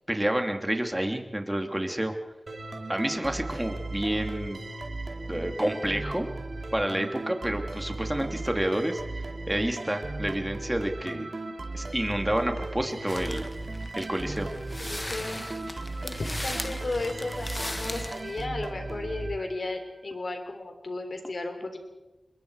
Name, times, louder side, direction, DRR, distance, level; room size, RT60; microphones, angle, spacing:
voice 1, 0.1-2.1 2.9-4.6 5.3-6.3 6.7-9.0 9.5-11.3 11.7-13.5 13.9-14.5, right 1 dB, 10° right, 5 dB, 2.8 m, -29 dB
sound 1, 2.5-20.0, right 2 dB, 60° right, 2.8 m, -37 dB
sound 2, 13.1-18.4, left 1 dB, 20° left, 1.3 m, -38 dB
voice 2, 14.8-15.4 16.0-21.8, left 2 dB, 60° left, 6 dB, 3.7 m, -34 dB
27.5 x 22.0 x 4.9 m, 1.0 s
wide cardioid pair, 55°, 0 cm